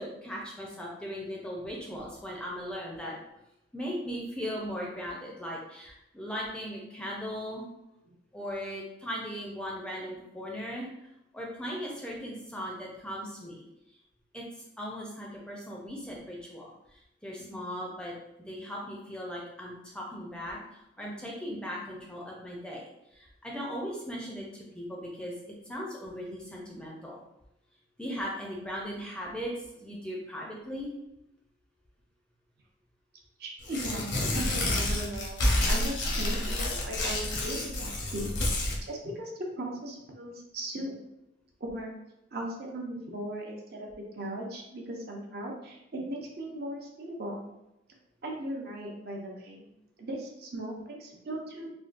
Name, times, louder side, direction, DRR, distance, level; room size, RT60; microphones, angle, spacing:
voice 1, 0.0-3.2 3.7-7.6 8.3-11.1 11.3-13.6 14.3-18.1 18.4-25.3 25.6-27.2 28.0-30.9, equal, 5° left, -3 dB, 0.5 m, -38 dB
voice 2, 33.4-41.0 41.6-41.9 42.3-47.5 48.2-49.6 50.0-51.7, right 1 dB, 55° right, 0 dB, 0.6 m, -38 dB
Tearing, 33.6-38.8, left 1 dB, 75° left, 0.7 m, -29 dB
3.5 x 2.2 x 2.5 m, 0.88 s
head